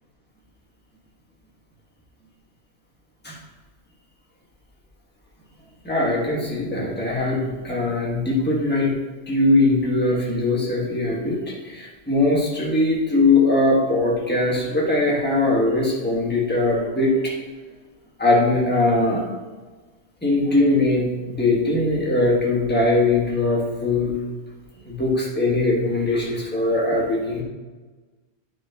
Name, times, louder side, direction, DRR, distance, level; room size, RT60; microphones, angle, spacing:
voice 1, 5.8-8.9 9.3-17.3 18.2-19.2 20.2-24.1 24.8-27.4, left 2 dB, 10° left, -3 dB, 1.4 m, -21 dB
9.6 x 6.4 x 2.9 m, 1.3 s
omnidirectional pair, 1.1 m